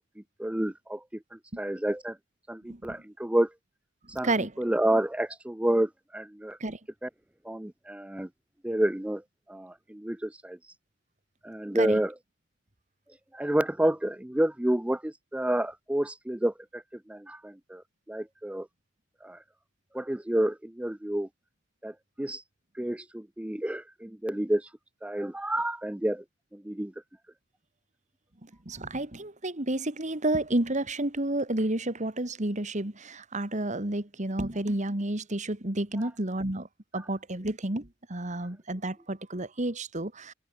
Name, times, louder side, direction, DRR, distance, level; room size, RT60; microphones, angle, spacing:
voice 1, 0.2-2.2 2.5-3.5 4.1-6.6 7.0-7.1 7.4-8.3 8.6-9.2 9.5-10.6 11.4-12.1 13.3-17.8 18.1-18.7 19.2-19.4 19.9-21.3 21.8-22.4 22.8-24.7 25.0-26.2 26.5-26.9 37.0-37.1, right 1 dB, 5° right, 0.5 m, -29 dB
voice 2, 28.7-36.7 36.9-40.3, right 1 dB, 40° right, 2.4 m, -30 dB
open air
head